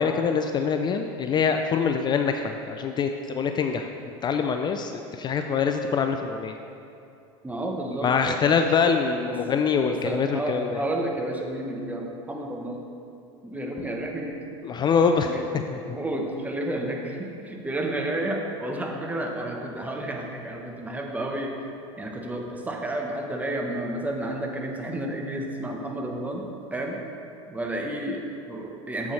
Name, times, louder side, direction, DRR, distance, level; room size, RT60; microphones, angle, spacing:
voice 1, 0.0-3.9 4.2-6.6 8.0-10.8 14.6-15.3 15.9-16.0, left 6 dB, 30° left, 6 dB, 0.3 m, -24 dB
voice 2, 7.4-8.4 9.2-9.4 9.9-12.8 13.4-14.4 15.2-21.6 22.0-26.4 26.7-27.0 27.5-29.1, right 1 dB, 10° right, 1 dB, 1.0 m, -31 dB
7.7 x 6.9 x 3.2 m, 2.7 s
supercardioid pair, 100°, 15 cm